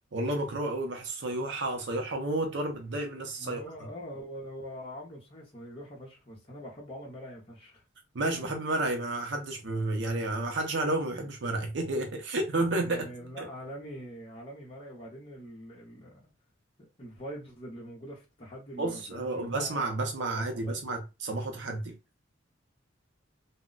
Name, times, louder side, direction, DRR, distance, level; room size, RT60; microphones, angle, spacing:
voice 1, 0.1-3.6 8.1-13.1 13.4-13.5 18.8-21.9, right 2 dB, 60° right, 0.5 m, -31 dB
voice 2, 3.4-7.8 12.8-16.3 16.8-20.0 20.3-20.8, equal, 30° left, 0.7 m, -44 dB
2.2 x 2.0 x 3.7 m
head